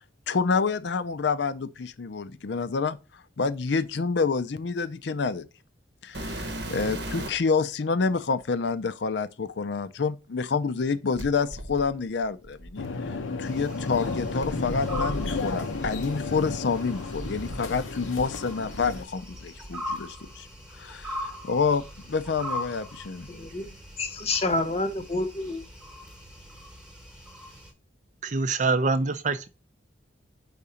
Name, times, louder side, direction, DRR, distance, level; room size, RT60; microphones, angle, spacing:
voice 1, 0.3-3.0 3.4-5.5 6.0-20.5 20.8-23.3, left 5 dB, 65° left, 0.5 m, -28 dB
sound 1, 6.1-7.5 8.4-8.5 11.2-13.2 14.4-18.1 18.4-19.5 20.2-20.4 21.0-21.1 21.8-22.9 23.1-23.6 25.0-25.1, right 1 dB, 60° right, 0.9 m, -39 dB
sound 2, 12.8-19.0, left 3 dB, 90° left, 0.7 m, -33 dB
sound 3, 13.4-27.7, left 1 dB, 5° right, 1.1 m, -41 dB
voice 2, 23.3-25.6, left 2 dB, 30° left, 0.8 m, -29 dB
voice 3, 28.2-29.5, right 3 dB, 40° right, 0.5 m, -25 dB
4.9 x 3.9 x 5.6 m
head